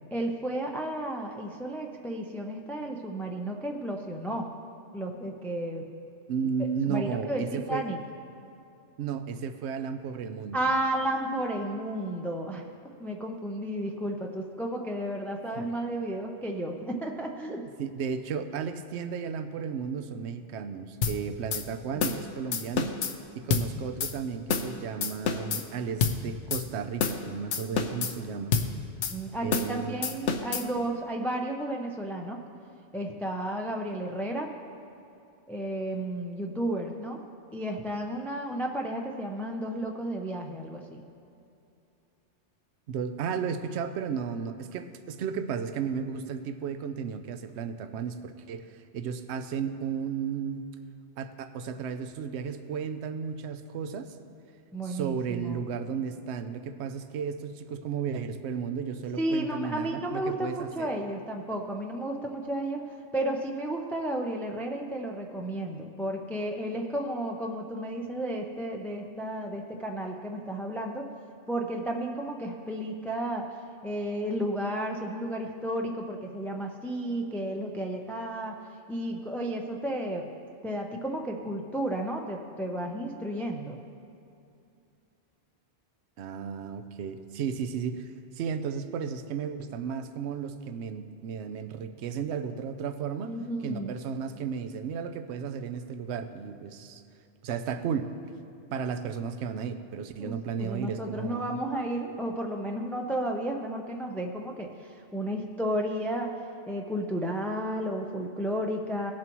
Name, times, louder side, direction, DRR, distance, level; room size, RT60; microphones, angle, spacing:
voice 1, 0.1-4.5 4.9-5.9 6.9-8.0 10.5-12.6 13.0-17.6 29.1-32.4 32.9-34.5 35.5-37.2 37.5-41.0 54.7-55.6 59.2-62.8 63.1-71.1 71.5-73.5 73.8-78.6 78.9-80.3 80.6-83.8 93.2-93.9 100.2-106.4 106.7-109.1, right 1 dB, 5° left, 2 dB, 0.4 m, -32 dB
voice 2, 6.3-7.9 9.0-10.6 15.5-15.7 17.8-23.0 23.3-28.5 29.4-30.0 42.9-50.7 51.2-54.1 54.8-60.9 86.2-93.3 93.6-97.0 97.4-98.1 98.7-101.6, right 6 dB, 70° right, 9 dB, 0.9 m, -34 dB
sound 1, 21.0-21.2 21.5-21.6 22.0-22.2 22.5-23.1 23.5-23.7 24.0-24.1 24.5-24.7 25.0-25.6 26.0-26.2 26.5-26.6 27.0-27.2 27.5-28.1 28.5-28.7 29.0-29.1 29.5-29.7 30.0-30.6, left 6 dB, 80° left, 1.0 m, -28 dB
18.5 x 7.4 x 3.0 m, 2.7 s
omnidirectional pair, 1.2 m